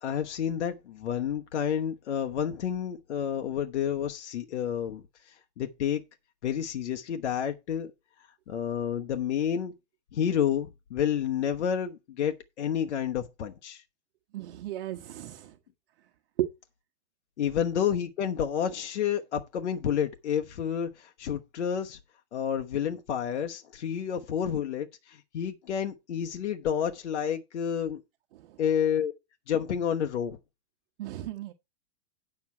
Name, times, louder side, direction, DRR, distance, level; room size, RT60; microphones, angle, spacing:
voice 1, 0.0-5.0 5.6-6.0 6.4-7.9 8.5-9.7 10.1-13.8 17.4-22.0 22.3-28.0 28.6-29.1 29.5-30.4, left 8 dB, 80° left, 1.1 m, -30 dB
voice 2, 14.3-15.6 16.4-16.5 28.3-28.6 31.0-31.5, right 13 dB, 55° right, 1.2 m, -34 dB
9.6 x 7.0 x 4.4 m
hypercardioid pair, 155°, 34 cm